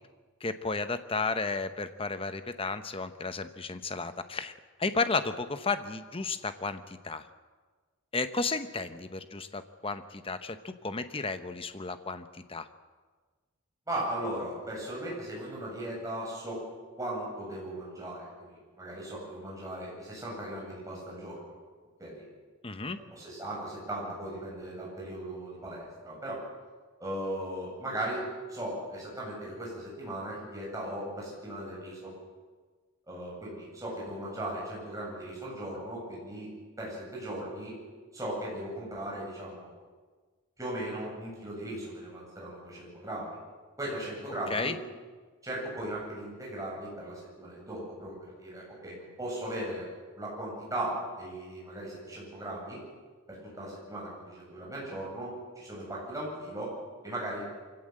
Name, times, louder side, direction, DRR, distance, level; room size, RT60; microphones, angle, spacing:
voice 1, 0.4-4.5 4.8-7.3 8.1-12.7 22.6-23.0 44.5-44.8, left 4 dB, 25° left, 10 dB, 0.9 m, -33 dB
voice 2, 13.9-16.6 17.0-21.4 22.0-22.2 23.1-26.4 27.0-32.1 33.1-36.5 36.8-37.8 38.1-39.7 40.6-43.4 43.8-44.8 45.4-49.9 50.1-52.8 53.3-56.7 57.0-57.4, right 1 dB, 15° right, -4 dB, 7.8 m, -37 dB
24.0 x 16.5 x 7.8 m, 1.4 s
head